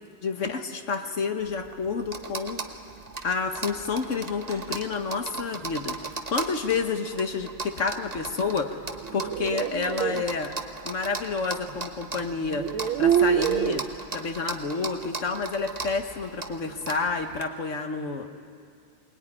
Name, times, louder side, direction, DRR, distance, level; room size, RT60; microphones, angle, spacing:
voice 1, 0.2-2.6 3.2-6.0 6.3-8.8 9.1-10.5 10.8-12.7 13.0-13.8 14.1-18.3, left 4 dB, 45° left, 6 dB, 1.4 m, -29 dB
sound 1, 1.4-17.4, right 3 dB, 30° right, 0.9 m, -38 dB
sound 2, 8.9-10.2 11.7-11.8 12.5-13.9, right 9 dB, 80° right, 1.6 m, -25 dB
22.5 x 20.0 x 9.9 m, 2.3 s
omnidirectional pair, 2.2 m